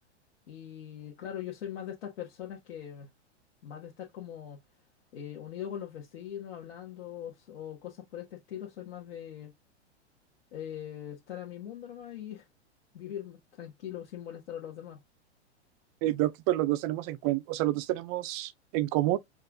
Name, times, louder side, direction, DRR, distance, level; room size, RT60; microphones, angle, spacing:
voice 1, 0.5-3.1 3.6-4.6 5.1-9.5 10.5-12.4 12.9-15.0, left 10 dB, 70° left, 1.4 m, -41 dB
voice 2, 16.0-19.2, right 16 dB, 30° right, 0.4 m, -28 dB
5.5 x 2.5 x 2.5 m
hypercardioid pair, 115°, 34 cm